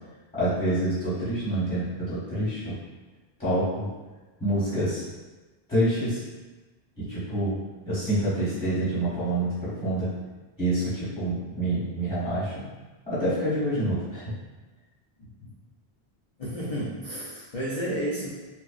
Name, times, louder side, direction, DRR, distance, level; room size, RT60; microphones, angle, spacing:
voice 1, 0.3-2.7 3.4-3.9 4.4-5.0 5.7-6.2 7.0-7.5 7.8-10.1 10.6-12.6 13.1-14.2, right 1 dB, 5° left, -13 dB, 1.0 m, -27 dB
voice 2, 15.2-15.5 16.4-18.3, right 1 dB, 50° left, -8 dB, 0.4 m, -32 dB
2.7 x 2.1 x 2.4 m, 1.2 s
omnidirectional pair, 1.1 m